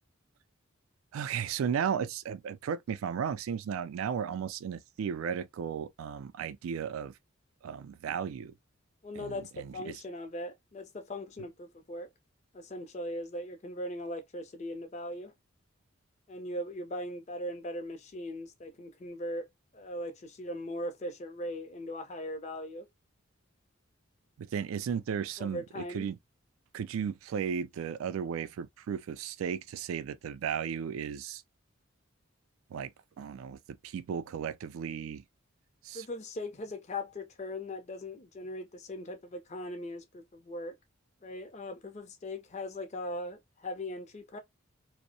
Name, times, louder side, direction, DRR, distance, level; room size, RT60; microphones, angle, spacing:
voice 1, 1.1-7.1 7.6-8.5 9.2-10.0 24.4-26.2 26.7-31.4 32.7-32.9 33.2-35.2 35.8-36.1, right 7 dB, 85° right, 0.3 m, -35 dB
voice 2, 9.0-12.1 12.5-15.3 16.3-19.5 19.7-22.9 25.4-26.1 35.9-40.8 41.2-44.4, left 1 dB, 35° left, 0.5 m, -39 dB
2.6 x 2.0 x 2.6 m
head